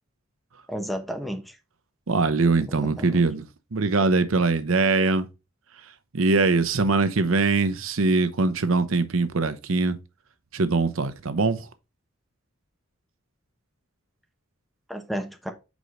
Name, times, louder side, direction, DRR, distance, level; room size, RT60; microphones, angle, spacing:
voice 1, 0.7-1.6 2.7-3.3 14.9-15.5, equal, ahead, 1.0 m, -32 dB
voice 2, 2.1-3.5 3.7-5.3 6.1-10.0 10.5-11.7, right 3 dB, 75° right, 0.7 m, -22 dB
4.9 x 3.9 x 4.9 m
head